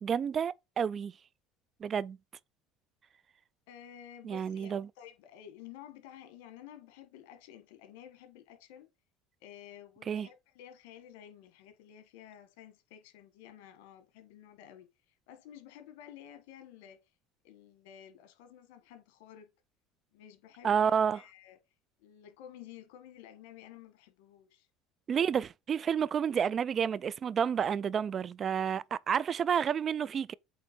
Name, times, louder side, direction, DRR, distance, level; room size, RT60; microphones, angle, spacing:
voice 1, 0.0-1.1 1.8-2.2 4.2-4.9 10.1-10.3 20.6-21.2 25.1-30.3, right 7 dB, 35° right, 0.3 m, -30 dB
voice 2, 3.7-8.9 9.4-14.9 15.3-17.0 17.4-19.5 20.1-21.6 22.0-24.7 28.6-28.7, left 10 dB, 85° left, 1.3 m, -52 dB
8.1 x 3.1 x 4.3 m
cardioid pair, 125°, 0 cm